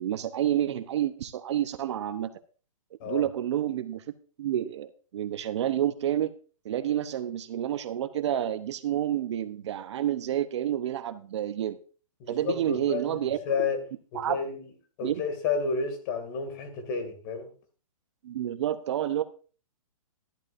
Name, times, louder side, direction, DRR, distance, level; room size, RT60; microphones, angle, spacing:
voice 1, 0.0-2.3 3.0-6.3 6.6-11.8 12.3-13.7 14.1-14.4 15.0-15.2 18.2-19.2, right 11 dB, 55° right, 0.9 m, -29 dB
voice 2, 12.2-13.8 14.1-14.7 15.0-17.5, left 5 dB, 35° left, 2.4 m, -31 dB
13.0 x 11.5 x 2.6 m
hypercardioid pair, 150°, 18 cm